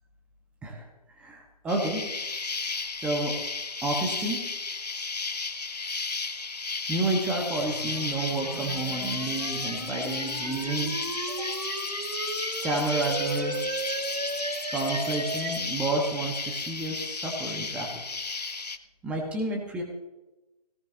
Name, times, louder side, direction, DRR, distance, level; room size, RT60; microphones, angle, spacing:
voice 1, 1.2-2.0 3.0-3.3 3.8-4.4 6.9-10.9 11.3-11.5 12.6-13.6 14.7-17.9 19.0-19.8, right 2 dB, 5° right, 1 dB, 1.4 m, -30 dB
Insect, 1.7-18.8, left 4 dB, 75° left, 1.2 m, -34 dB
sound 1, 7.6-15.6, right 2 dB, 70° right, 2.9 m, -35 dB
18.5 x 18.0 x 2.9 m, 1.0 s
figure-of-eight pair, 150°, 21 cm